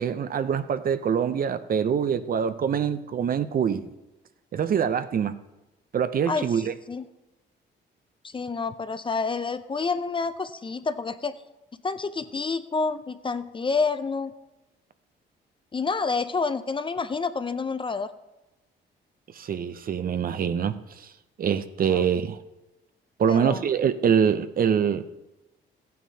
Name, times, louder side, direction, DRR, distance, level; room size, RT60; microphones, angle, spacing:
voice 1, 0.0-3.9 4.5-5.3 5.9-6.7 19.3-21.1 21.4-22.4 23.2-25.0, right 7 dB, 45° right, 0.6 m, -24 dB
voice 2, 6.3-6.6 6.9-7.0 8.2-11.4 11.8-14.3 15.7-18.1 21.9-22.0 23.3-23.6, left 4 dB, 25° left, 0.5 m, -28 dB
14.0 x 9.3 x 2.8 m
cardioid pair, 90°, 20 cm